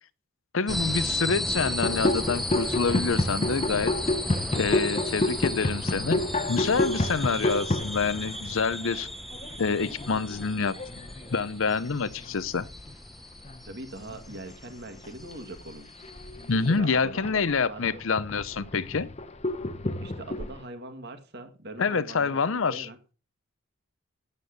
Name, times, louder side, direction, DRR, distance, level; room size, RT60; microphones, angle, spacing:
voice 1, 0.5-3.9 4.5-6.2 6.5-9.1 9.6-10.7 11.3-12.7 16.5-19.1 21.8-22.9, left 5 dB, 65° left, 0.7 m, -27 dB
sound 1, 0.7-16.7, equal, ahead, 0.8 m, -35 dB
sound 2, 1.6-13.0 13.3-13.7 14.0-20.6, left 2 dB, 30° left, 0.8 m, -31 dB
voice 2, 13.7-15.9 16.7-18.0 20.0-23.0, right 1 dB, 50° right, 2.0 m, -42 dB
9.7 x 8.4 x 6.6 m
head